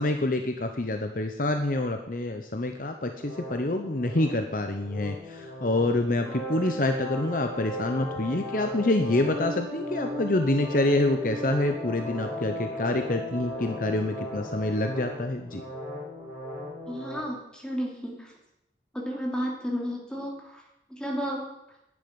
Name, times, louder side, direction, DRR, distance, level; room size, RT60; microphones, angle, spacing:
voice 1, 0.0-15.6, left 1 dB, 45° left, 5 dB, 1.0 m, -27 dB
sound 1, 3.2-17.2, left 1 dB, 10° right, 4.0 m, -36 dB
voice 2, 16.9-18.3 18.9-20.6 21.0-21.4, equal, 5° left, -2 dB, 3.0 m, -32 dB
11.0 x 8.8 x 9.7 m, 0.85 s
head